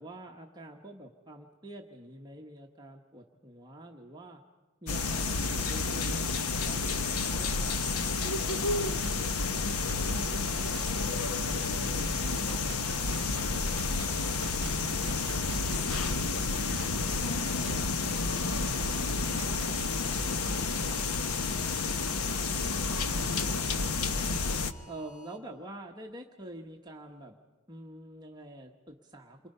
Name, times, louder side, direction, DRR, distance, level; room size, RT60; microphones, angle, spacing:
voice 1, 0.0-4.4 4.8-9.8 22.5-24.4 24.9-27.4 27.7-29.5, right 1 dB, 20° right, 1 dB, 1.1 m, -47 dB
sound 1, 4.9-24.7, left 4 dB, 85° left, 1.0 m, -30 dB
sound 2, 9.0-19.9, right 3 dB, 60° right, 1.0 m, -46 dB
voice 2, 11.6-14.6 15.1-15.6 16.2-18.3 18.5-20.5, left 1 dB, 65° left, 2 dB, 2.2 m, -48 dB
sound 3, 13.9-16.3 16.9-17.9 18.4-19.4 19.8-22.2 22.8-23.9 24.3-25.4, left 1 dB, 30° left, 5.3 m, -55 dB
29.0 x 23.0 x 5.5 m, 1.3 s
head